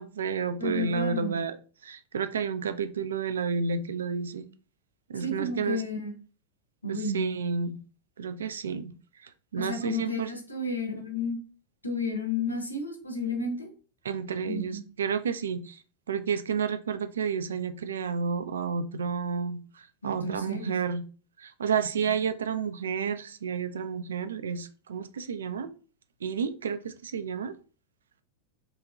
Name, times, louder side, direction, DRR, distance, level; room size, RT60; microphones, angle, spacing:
voice 1, 0.0-1.6 1.8-4.5 5.1-5.8 6.9-7.8 8.2-8.9 9.5-10.3 14.0-15.8 16.1-21.0 21.4-25.7 26.2-27.5, right 6 dB, 65° right, 0.3 m, -31 dB
voice 2, 0.6-1.4 5.2-6.1 6.8-7.4 9.6-11.4 11.8-13.7 14.4-14.8 20.0-20.7 22.1-22.2, left 3 dB, 85° left, 0.7 m, -32 dB
3.0 x 2.8 x 2.3 m
figure-of-eight pair, 90°, 0 cm